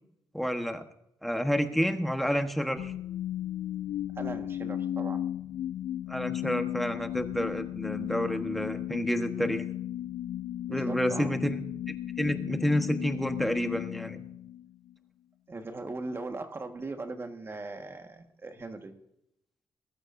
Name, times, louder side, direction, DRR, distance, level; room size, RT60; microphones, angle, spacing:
voice 1, 0.3-0.8 1.2-2.9 6.1-9.6 10.7-11.6 12.2-14.2, equal, ahead, 6 dB, 1.2 m, -29 dB
sound 1, 2.8-14.9, left 12 dB, 75° left, 0.4 m, -35 dB
voice 2, 4.1-5.2 10.7-11.3 15.5-18.9, right 3 dB, 30° right, 5 dB, 1.5 m, -39 dB
20.5 x 13.0 x 2.6 m, 0.78 s
wide cardioid pair, 135°, 8 cm